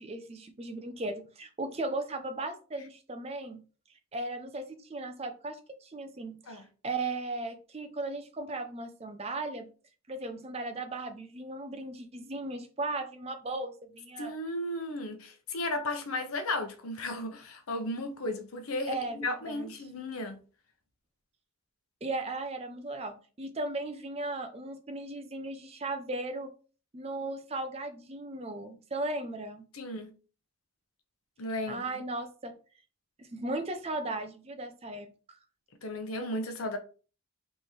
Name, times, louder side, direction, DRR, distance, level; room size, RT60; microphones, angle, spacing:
voice 1, 0.0-3.6 4.1-9.7 10.1-14.3 18.9-20.0 22.0-26.5 26.9-29.6 31.7-32.5 33.2-35.1, right 2 dB, 30° right, 0.5 m, -37 dB
voice 2, 14.2-20.4 29.7-30.1 31.4-31.8 35.8-36.8, left 1 dB, 85° left, 0.8 m, -34 dB
3.6 x 3.2 x 4.1 m
head